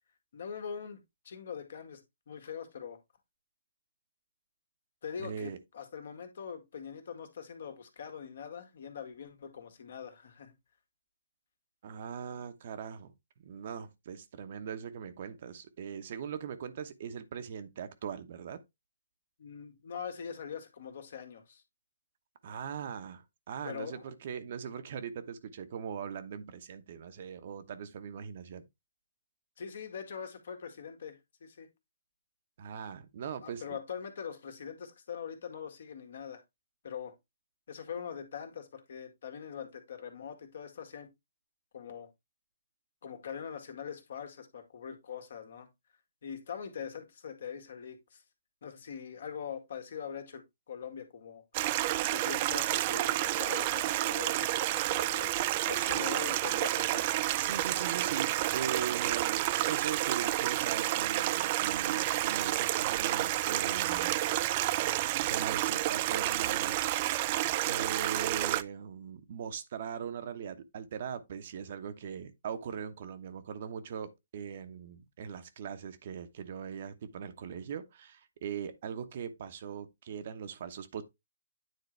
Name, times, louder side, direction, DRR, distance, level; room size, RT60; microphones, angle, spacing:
voice 1, 0.3-2.0 2.3-3.0 5.0-10.5 19.4-21.6 23.6-24.0 29.6-31.7 33.4-36.4 36.8-37.1 37.7-41.1 41.7-42.1 43.0-45.7 46.2-48.2 48.6-51.4 52.1-55.3 55.7-57.0, left 7 dB, 60° left, 1.9 m, -42 dB
voice 2, 5.2-5.6 11.8-13.1 13.4-18.6 22.4-28.6 32.6-33.8 57.3-64.2 65.3-66.8 67.6-81.0, right 7 dB, 50° right, 1.0 m, -40 dB
Stream, 51.5-68.6, right 15 dB, 35° right, 0.4 m, -30 dB
9.4 x 3.9 x 3.3 m
hypercardioid pair, 140°, 0 cm